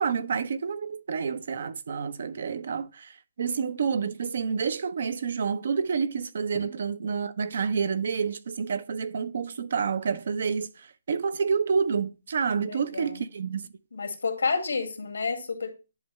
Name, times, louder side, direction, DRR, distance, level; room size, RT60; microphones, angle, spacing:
voice 1, 0.0-13.7, right 6 dB, 60° right, 0.6 m, -29 dB
voice 2, 12.6-13.2 13.9-15.7, left 4 dB, 85° left, 1.9 m, -30 dB
10.5 x 3.6 x 3.1 m
hypercardioid pair, 160°, 0 cm